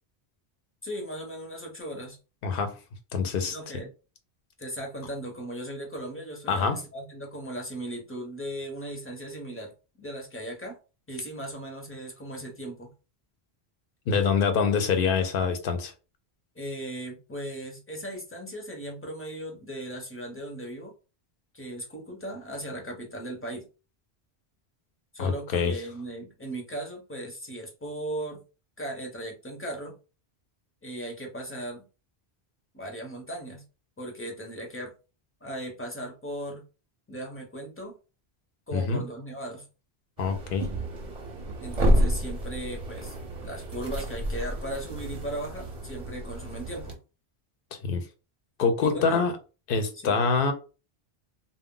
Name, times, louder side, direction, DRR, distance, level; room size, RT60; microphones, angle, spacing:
voice 1, 0.8-2.2 3.5-3.9 4.6-9.7 10.0-10.8 11.1-12.9 16.5-20.9 21.5-23.7 25.1-28.4 28.8-30.0 30.8-31.9 32.7-33.6 34.0-34.9 35.4-36.6 37.1-38.0 38.7-39.7 41.6-47.0 48.8-49.3 50.0-50.3, right 1 dB, 15° left, 0.6 m, -37 dB
voice 2, 2.4-2.8 3.1-3.8 6.5-6.8 14.1-15.9 25.2-25.8 38.7-39.0 40.2-40.7 47.7-48.1 48.6-49.3 49.7-50.5, left 5 dB, 60° left, 0.7 m, -25 dB
sound 1, 40.2-46.9, equal, 40° right, 0.6 m, -29 dB
2.2 x 2.0 x 3.6 m
omnidirectional pair, 1.1 m